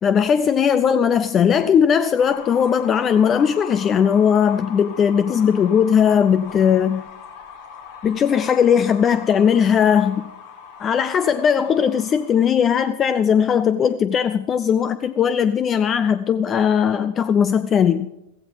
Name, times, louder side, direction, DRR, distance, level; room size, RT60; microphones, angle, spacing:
voice 1, 0.0-7.1 8.0-10.3 10.8-18.1, left 7 dB, 25° left, 13 dB, 0.4 m, -18 dB
sound 1, 2.2-12.5, left 6 dB, 50° left, 2.0 m, -40 dB
15.5 x 15.0 x 4.0 m, 0.91 s
figure-of-eight pair, 90°, 0 cm